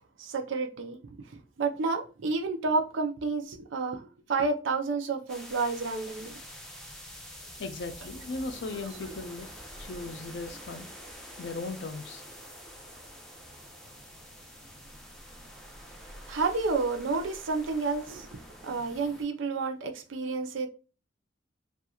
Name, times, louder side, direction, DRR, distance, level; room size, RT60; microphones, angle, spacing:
voice 1, 0.2-1.0 1.3-6.4 8.9-9.1 16.3-20.7, right 4 dB, 90° right, 0.5 m, -30 dB
sound 1, 5.3-19.2, equal, 5° left, 0.7 m, -47 dB
voice 2, 7.6-9.5 9.8-10.9 11.4-12.2, left 3 dB, 70° left, 0.4 m, -37 dB
2.8 x 2.4 x 2.3 m
head